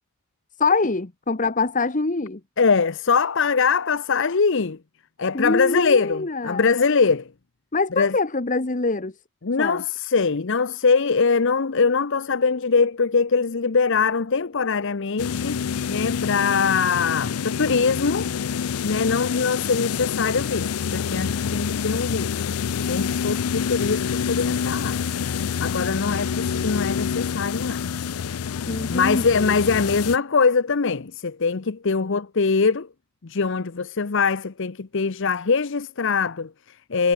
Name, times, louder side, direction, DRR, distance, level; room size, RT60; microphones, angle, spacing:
voice 1, 0.6-2.4 5.3-6.7 7.7-9.1 9.6-9.8 28.7-29.5, left 3 dB, 35° left, 1.1 m, -24 dB
voice 2, 2.6-4.8 5.2-7.3 7.9-8.2 9.4-15.6 15.9-18.3 18.8-22.4 22.8-25.0 25.6-27.8 28.9-32.9 33.2-37.1, left 5 dB, 60° left, 0.7 m, -22 dB
sound 1, 15.2-30.2, left 7 dB, 90° left, 0.5 m, -27 dB
head